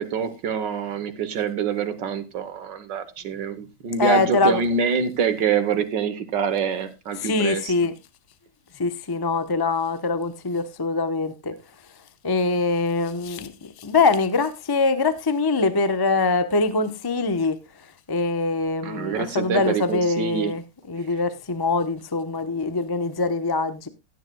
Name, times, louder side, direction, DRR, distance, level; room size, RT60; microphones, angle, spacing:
voice 1, 0.0-7.7 18.8-20.5, right 6 dB, 65° right, 1.6 m, -26 dB
voice 2, 4.0-4.6 7.2-7.9 8.7-11.5 12.2-17.6 18.1-23.9, left 3 dB, 25° left, 0.5 m, -23 dB
16.0 x 10.0 x 2.2 m
omnidirectional pair, 2.1 m